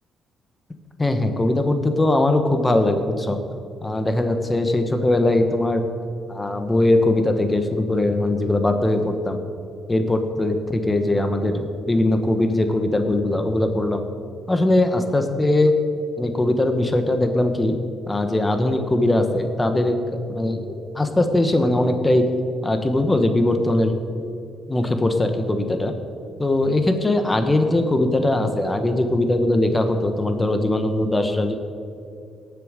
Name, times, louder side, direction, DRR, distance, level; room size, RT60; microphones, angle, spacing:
voice 1, 1.0-3.4 3.8-5.8 6.3-9.4 9.9-14.0 14.5-15.7 16.2-17.7 18.1-20.0 20.3-22.2 22.6-24.0 24.7-25.9 26.4-31.5, left 1 dB, 15° left, 6 dB, 1.2 m, -20 dB
18.0 x 7.0 x 5.1 m, 2.6 s
cardioid pair, 90°, 0 cm